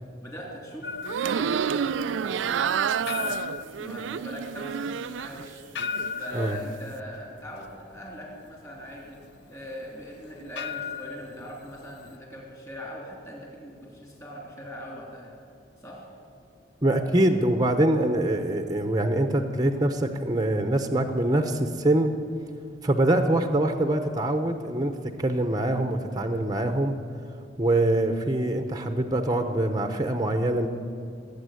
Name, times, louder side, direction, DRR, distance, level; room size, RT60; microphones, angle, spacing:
voice 1, 0.2-0.9 1.2-3.4 3.8-5.6 6.2-9.2 9.5-15.3 15.8-16.1, equal, 15° left, -2 dB, 3.2 m, -40 dB
sound 1, 0.8-12.2, left 5 dB, 60° left, 0.7 m, -38 dB
sound 2, 1.0-5.5 5.8-6.5, right 7 dB, 75° right, 0.4 m, -29 dB
voice 2, 16.8-22.1 22.8-26.9 27.6-30.7, right 1 dB, 20° right, 6 dB, 0.9 m, -24 dB
19.0 x 8.5 x 8.4 m, 2.6 s
head